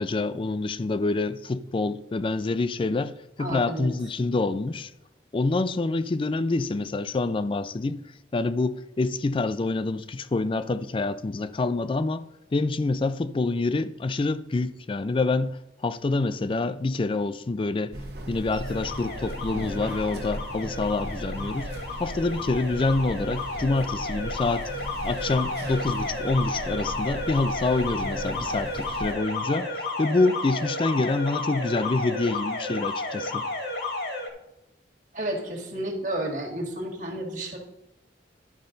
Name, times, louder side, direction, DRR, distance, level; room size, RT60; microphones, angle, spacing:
voice 1, 0.0-4.9 5.3-8.0 8.3-15.6 15.8-17.9 18.3-21.7 22.0-24.7 25.0-29.7 30.0-33.5, left 3 dB, 30° left, 0.4 m, -26 dB
voice 2, 3.4-3.9 35.1-37.6, right 1 dB, 45° right, 1.7 m, -31 dB
sound 1, 17.9-29.1, right 1 dB, 60° right, 1.0 m, -37 dB
Alarm, 18.6-34.3, left 2 dB, 65° left, 1.6 m, -32 dB
11.5 x 5.5 x 3.9 m
head